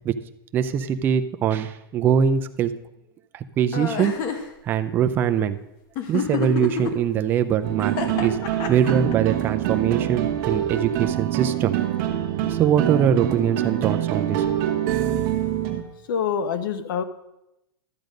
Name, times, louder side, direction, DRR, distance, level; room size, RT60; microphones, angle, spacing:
voice 1, 0.5-2.7 3.3-4.1 4.7-5.6 6.1-8.4 8.7-11.8 12.5-14.4, right 8 dB, 15° right, 8 dB, 0.4 m, -22 dB
sound 1, 3.7-4.4 6.0-6.9 7.8-9.1, left 7 dB, 30° left, 1.1 m, -27 dB
sound 2, 7.6-15.8, right 11 dB, 35° right, 1.2 m, -25 dB
voice 2, 16.1-17.0, left 7 dB, 60° left, 12 dB, 1.0 m, -25 dB
12.5 x 7.8 x 5.2 m, 0.90 s
supercardioid pair, 165°, 13 cm